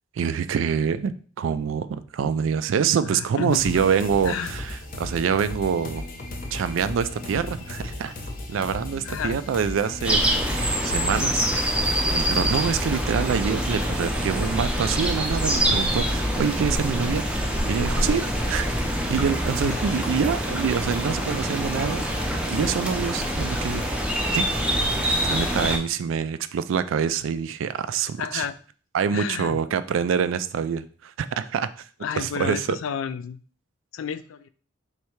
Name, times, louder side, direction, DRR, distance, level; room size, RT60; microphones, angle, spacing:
voice 1, 0.2-6.0 6.5-8.1 8.5-10.4 10.8-17.2 17.7-18.7 19.1-23.8 24.3-24.5 24.8-24.9 25.2-28.5 28.9-31.7 32.2-32.8, right 7 dB, 75° right, 13 dB, 0.3 m, -26 dB
voice 2, 3.1-3.7 4.3-4.5 9.0-9.4 19.6-19.9 28.2-28.6 29.1-29.6 32.0-33.4 33.9-34.5, left 7 dB, 80° left, 13 dB, 0.3 m, -31 dB
sound 1, 3.5-13.0, left 1 dB, 45° left, 0.7 m, -35 dB
sound 2, 10.0-25.8, equal, 5° right, 0.5 m, -25 dB
3.2 x 2.7 x 4.5 m, 0.42 s
head